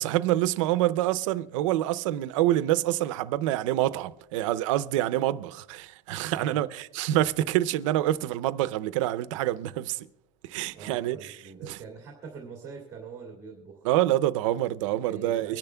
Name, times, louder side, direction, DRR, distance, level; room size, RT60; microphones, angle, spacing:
voice 1, 0.0-10.1 10.4-11.4 11.6-11.8 13.8-15.6, right 14 dB, 85° right, 0.6 m, -26 dB
voice 2, 6.3-6.6 10.7-13.9 15.0-15.6, right 5 dB, 20° right, 2.1 m, -43 dB
24.5 x 10.5 x 2.2 m
cardioid pair, 170°, 16 cm